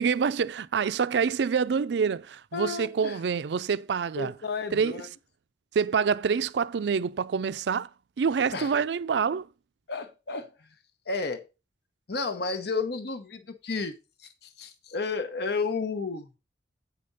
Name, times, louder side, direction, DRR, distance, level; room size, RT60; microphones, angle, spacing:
voice 1, 0.0-4.3 4.7-4.9 5.7-7.9 8.2-9.5, right 6 dB, 70° right, 0.4 m, -26 dB
voice 2, 2.5-3.2 4.2-5.1 8.5-8.7 9.9-10.7 11.1-11.4 12.1-13.9 14.2-16.3, left 4 dB, 65° left, 0.9 m, -32 dB
8.4 x 5.1 x 5.4 m
head